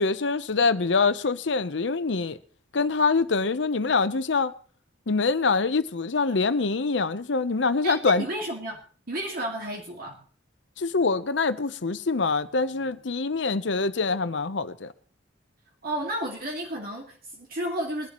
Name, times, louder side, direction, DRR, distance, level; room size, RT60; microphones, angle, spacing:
voice 1, 0.0-2.4 2.7-4.5 5.1-8.3 10.8-14.9, left 4 dB, 75° left, 0.8 m, -24 dB
voice 2, 7.8-8.8 9.1-10.2 15.8-18.1, right 1 dB, 55° right, 2.2 m, -32 dB
21.5 x 11.5 x 3.0 m
head